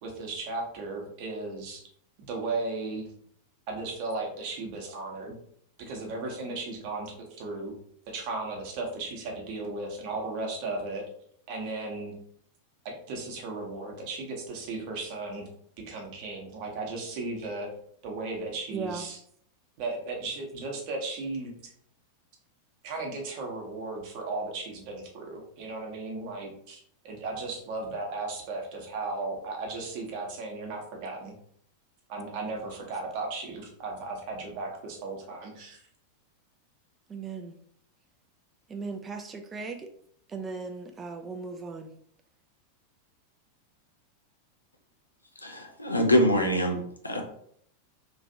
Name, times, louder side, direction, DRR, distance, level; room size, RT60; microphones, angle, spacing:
voice 1, 0.0-1.8 2.3-3.1 3.7-5.4 5.8-7.7 8.1-11.0 11.5-12.1 12.8-15.5 15.9-17.7 18.0-19.2 19.8-21.7 22.8-31.3 32.1-35.8, right 3 dB, 45° right, 1 dB, 0.8 m, -35 dB
voice 2, 18.7-19.0 37.1-37.5 38.7-39.9 40.3-41.9, right 4 dB, 20° right, 5 dB, 0.3 m, -37 dB
voice 3, 45.4-47.2, equal, 85° left, 3 dB, 0.5 m, -24 dB
3.0 x 2.5 x 2.7 m, 0.65 s
figure-of-eight pair, 90°, 0 cm